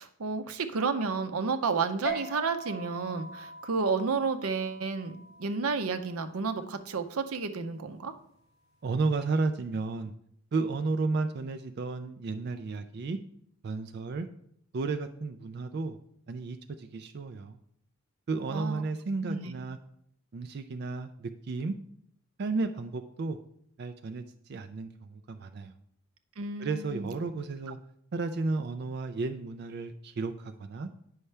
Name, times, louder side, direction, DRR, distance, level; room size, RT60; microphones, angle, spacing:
voice 1, 0.0-8.1 18.5-18.8 19.2-19.6 26.4-27.1, right 4 dB, 85° right, 8 dB, 0.7 m, -31 dB
sound 1, 2.0-8.8, right 2 dB, 35° left, 2.2 m, -43 dB
voice 2, 8.8-10.1 10.5-13.2 13.6-14.3 14.7-16.0 16.3-17.6 18.3-19.8 20.3-21.8 22.4-23.4 23.8-25.7 26.6-27.8 28.1-30.9, right 3 dB, 50° right, 8 dB, 0.4 m, -33 dB
9.4 x 5.5 x 3.3 m, 0.69 s
head